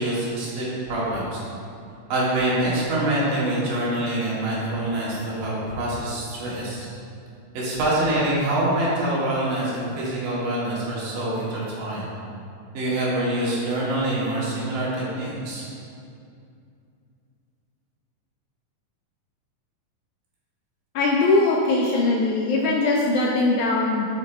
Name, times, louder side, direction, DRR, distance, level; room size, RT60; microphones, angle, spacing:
voice 1, 0.0-1.4 2.1-6.9 7.5-12.1 12.7-15.6, right 1 dB, 75° right, -6 dB, 2.9 m, -25 dB
voice 2, 21.0-24.1, left 2 dB, 80° left, -2 dB, 1.8 m, -21 dB
6.8 x 4.2 x 4.0 m, 2.5 s
omnidirectional pair, 3.9 m